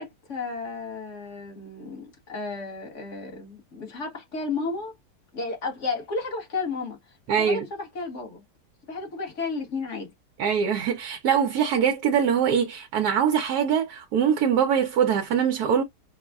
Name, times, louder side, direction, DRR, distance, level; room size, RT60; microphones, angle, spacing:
voice 1, 0.0-4.9 5.3-7.0 7.4-8.4 8.9-10.1, left 4 dB, 50° left, 1.4 m, -33 dB
voice 2, 7.3-7.6 10.4-15.8, right 8 dB, 70° right, 1.1 m, -23 dB
6.0 x 2.1 x 2.3 m
omnidirectional pair, 1.8 m